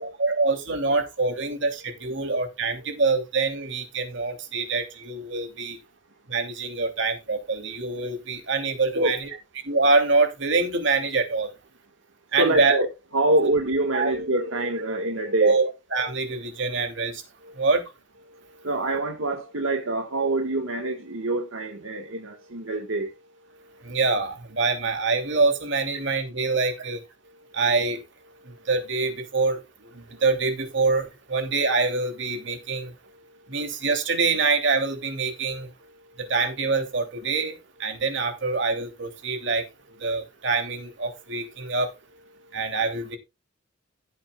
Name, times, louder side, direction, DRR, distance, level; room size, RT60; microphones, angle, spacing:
voice 1, 0.0-5.8 6.3-9.3 9.7-11.5 12.3-12.8 13.9-14.1 15.4-17.2 17.5-17.8 23.8-27.0 27.5-28.0 28.4-29.6 29.9-32.9 33.5-35.7 36.2-37.5 37.8-39.7 40.0-41.9 42.5-43.2, right 3 dB, 60° right, 2.9 m, -25 dB
voice 2, 12.4-15.6 16.0-16.1 18.6-23.1, right 2 dB, 85° right, 1.7 m, -25 dB
16.0 x 8.4 x 2.4 m
head